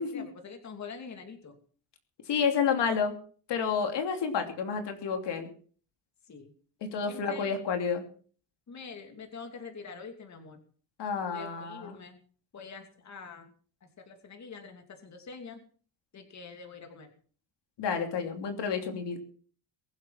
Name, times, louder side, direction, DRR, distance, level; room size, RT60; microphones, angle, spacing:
voice 1, 0.0-1.6 6.3-6.5 7.1-7.6 8.7-10.6 11.3-12.2 12.5-13.5 13.8-15.6 16.1-17.1, left 5 dB, 35° left, 5 dB, 2.8 m, -45 dB
voice 2, 2.3-3.1 3.5-5.5 6.8-8.0 11.0-12.0 17.8-19.2, left 6 dB, 65° left, 5 dB, 3.0 m, -30 dB
22.5 x 7.8 x 5.8 m, 0.43 s
cardioid pair, 120°, 45 cm